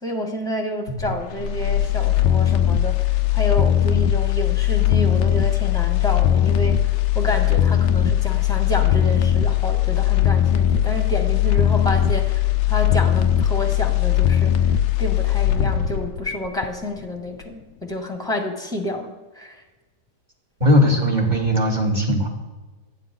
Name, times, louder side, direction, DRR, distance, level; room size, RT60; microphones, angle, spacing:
voice 1, 0.0-6.8 7.1-14.7 15.0-19.6, left 1 dB, ahead, 3 dB, 2.2 m, -29 dB
voice 2, 0.9-1.2 20.6-22.3, equal, 20° right, 0 dB, 3.2 m, -19 dB
sound 1, 1.0-17.1 17.4-17.5, left 11 dB, 80° left, 1.6 m, -19 dB
28.0 x 10.0 x 3.9 m, 1.2 s
omnidirectional pair, 2.3 m